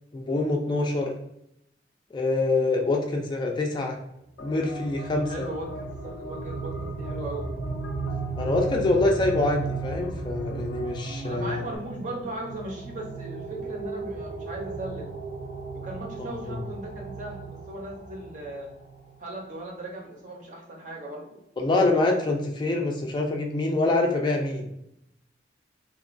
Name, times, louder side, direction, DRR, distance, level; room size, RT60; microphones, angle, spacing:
voice 1, 0.1-1.1 2.1-4.0 4.4-5.5 8.4-11.6 16.2-16.6 21.6-24.7, left 2 dB, 25° left, 2 dB, 0.3 m, -25 dB
sound 1, 4.4-11.8, left 3 dB, 90° left, 0.4 m, -43 dB
sound 2, 4.4-19.1, right 4 dB, 75° right, 1.0 m, -36 dB
voice 2, 5.2-7.5 11.3-15.1 15.7-18.7 19.2-21.4, right 1 dB, 45° right, 0 dB, 0.6 m, -38 dB
2.9 x 2.2 x 2.4 m, 0.79 s
head